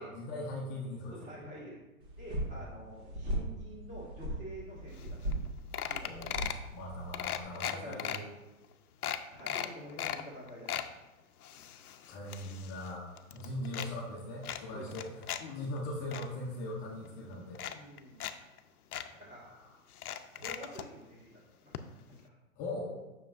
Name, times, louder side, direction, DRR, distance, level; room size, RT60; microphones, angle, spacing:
voice 1, 0.0-1.2 2.5-2.6 6.0-6.3 6.7-8.2 12.1-17.6 19.3-19.7 22.6-22.9, left 1 dB, 20° left, -3 dB, 0.6 m, -40 dB
voice 2, 1.1-1.8 2.2-5.2 5.8-6.4 7.7-8.1 9.3-10.9 13.3-13.4 14.7-14.9 17.0-17.1 17.6-18.2 19.3-19.4 20.4-21.3 21.6-21.7, equal, 15° right, -5 dB, 1.8 m, -47 dB
sound 1, 2.0-7.4, right 1 dB, 45° right, 1.8 m, -38 dB
sound 2, 5.0-5.1 5.3-5.5 5.7-6.7 7.1-8.2 8.6-8.7 9.0-10.2 10.5-10.9 11.4-12.9 13.2-13.9 14.4-15.4 15.8-16.3 17.1-17.2 17.5-18.3 18.6-18.7 18.9-19.1 19.9-20.9 21.7-21.8 22.1-22.2, left 10 dB, 85° left, 0.6 m, -37 dB
7.2 x 6.2 x 2.5 m, 1.1 s
hypercardioid pair, 140°, 44 cm